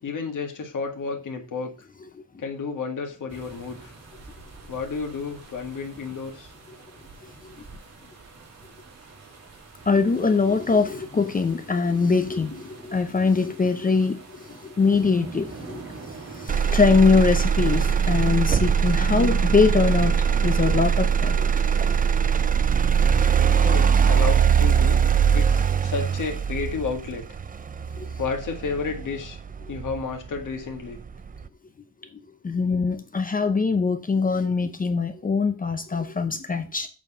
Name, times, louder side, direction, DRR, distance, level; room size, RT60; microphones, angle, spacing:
voice 1, 0.0-1.9 2.4-3.9 4.7-6.5 23.5-25.0 25.3-27.2 28.2-29.4 29.7-31.0, left 5 dB, 80° left, 2 dB, 1.9 m, -31 dB
sound 1, 3.3-18.4, right 3 dB, 55° right, 2.4 m, -45 dB
voice 2, 9.9-14.2 14.6-21.5 28.0-28.1 32.4-36.9, left 4 dB, 25° left, 8 dB, 0.7 m, -22 dB
Motor vehicle (road), 16.5-30.5 31.0-31.5, right 7 dB, 30° right, 0.4 m, -21 dB
sound 2, 16.7-20.7, left 3 dB, 10° left, 2.5 m, -44 dB
8.3 x 4.5 x 5.6 m, 0.34 s
wide cardioid pair, 175°, 31 cm